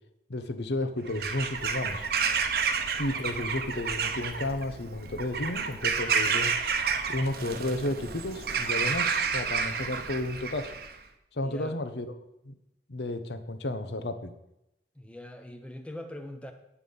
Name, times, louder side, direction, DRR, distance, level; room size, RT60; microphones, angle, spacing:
voice 1, 0.3-2.1 3.0-6.7 7.1-10.7 11.3-12.1 12.4-12.5 12.9-14.3, left 1 dB, 70° left, 10 dB, 0.9 m, -32 dB
Bird vocalization bird call bird song / Crow, 1.1-11.0, right 6 dB, 55° right, 0.9 m, -30 dB
voice 2, 11.4-11.8 14.9-16.5, left 1 dB, 5° left, 5 dB, 0.8 m, -42 dB
9.5 x 8.5 x 5.4 m, 0.87 s
head